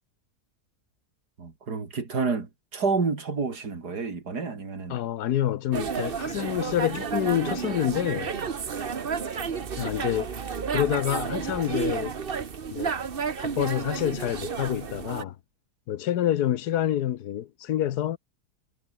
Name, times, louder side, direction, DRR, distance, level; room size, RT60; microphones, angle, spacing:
voice 1, 1.4-5.0, right 4 dB, 90° right, 3.5 m, -29 dB
voice 2, 4.9-8.3 9.8-10.3 10.7-12.1 12.7-13.0 13.4-15.3 15.9-18.2, left 11 dB, 80° left, 1.4 m, -27 dB
sound 1, 5.7-15.2, right 6 dB, 40° right, 1.2 m, -31 dB
omnidirectional pair, 1.7 m